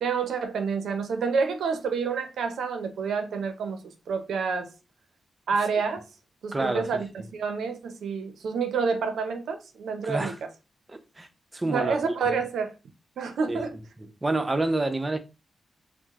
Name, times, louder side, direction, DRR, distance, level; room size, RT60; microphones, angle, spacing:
voice 1, 0.0-4.7 5.5-6.0 6.4-7.1 7.3-10.3 11.6-12.7 13.2-13.7, right 5 dB, 85° right, 0.6 m, -28 dB
voice 2, 6.5-6.9 10.0-10.4 10.9-11.3 11.5-12.1 13.5-13.7 14.2-15.2, right 2 dB, 30° right, 0.7 m, -28 dB
5.6 x 2.1 x 2.9 m
cardioid pair, 50°, 0 cm